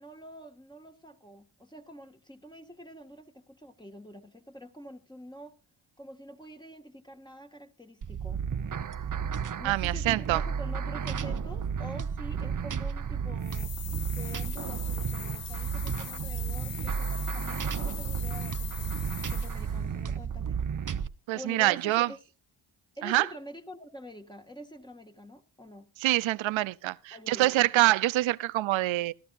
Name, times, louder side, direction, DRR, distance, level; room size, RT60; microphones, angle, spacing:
voice 1, 0.0-5.6 6.0-8.4 9.6-13.7 14.1-18.9 19.3-20.6 21.3-22.2 23.0-25.9 27.1-27.7, equal, 10° left, 1.8 m, -46 dB
sound 1, 8.0-21.1, right 7 dB, 40° right, 0.9 m, -32 dB
voice 2, 9.6-10.4 21.3-22.1 23.0-23.3 26.0-29.1, right 16 dB, 70° right, 0.7 m, -25 dB
sound 2, 13.4-19.8, left 10 dB, 65° left, 1.1 m, -42 dB
17.0 x 12.0 x 2.6 m
supercardioid pair, 45°, 48 cm